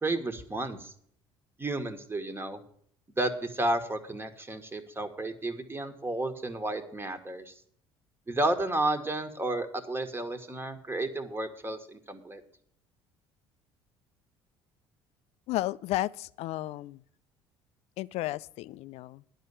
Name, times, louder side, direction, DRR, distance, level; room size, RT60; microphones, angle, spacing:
voice 1, 0.0-0.9 1.6-2.6 3.2-7.5 8.3-12.4, right 2 dB, 20° right, 1.5 m, -32 dB
voice 2, 15.5-17.0 18.0-19.2, left 15 dB, 60° left, 0.4 m, -33 dB
10.0 x 5.6 x 8.5 m
hypercardioid pair, 60°, 12 cm